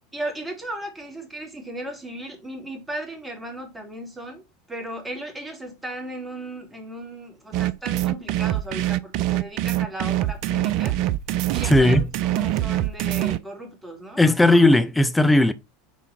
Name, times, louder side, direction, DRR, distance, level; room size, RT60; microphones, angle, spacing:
voice 1, 0.1-4.4 4.7-11.0 11.5-14.2, right 1 dB, 10° right, 3.1 m, -36 dB
sound 1, 7.5-13.4, right 14 dB, 55° right, 0.5 m, -24 dB
voice 2, 11.7-12.1 14.2-15.5, left 2 dB, 10° left, 0.8 m, -16 dB
6.2 x 4.1 x 4.4 m
figure-of-eight pair, 80°, 0 cm